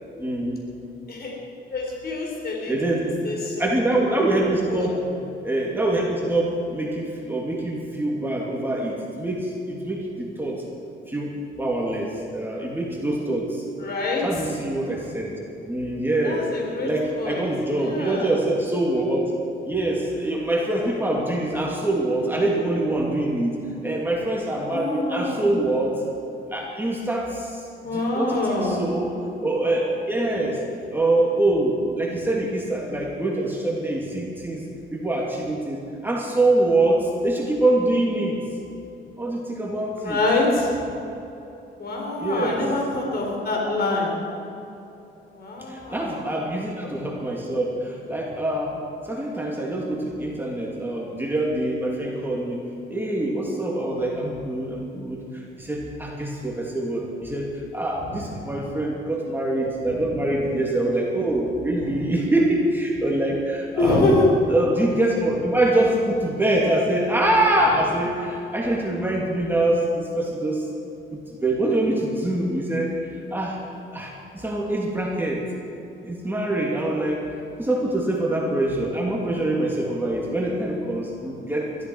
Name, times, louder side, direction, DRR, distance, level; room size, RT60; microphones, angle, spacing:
voice 1, 0.2-0.7 2.7-5.1 5.4-10.6 11.1-13.7 14.2-15.4 15.7-16.5 16.8-19.4 19.7-23.6 23.8-26.0 26.5-27.6 27.9-29.1 29.4-30.6 30.9-38.4 39.2-40.2 42.2-42.6 45.7-64.1 64.5-70.7 71.3-73.6 73.9-75.4 76.0-77.3 77.6-81.9, right 1 dB, 10° right, -2 dB, 2.7 m, -24 dB
voice 2, 1.7-2.7 3.2-3.7 4.7-4.9 13.8-14.4 16.2-16.9 17.2-17.5 17.7-18.3 24.7-25.6 27.8-28.9 40.0-40.9 41.8-44.2 45.3-46.3 58.0-58.6 59.8-60.4 61.8-62.0 63.8-64.3, left 2 dB, 50° left, -1 dB, 4.2 m, -26 dB
21.5 x 14.0 x 4.7 m, 3.0 s
cardioid pair, 95°, 20 cm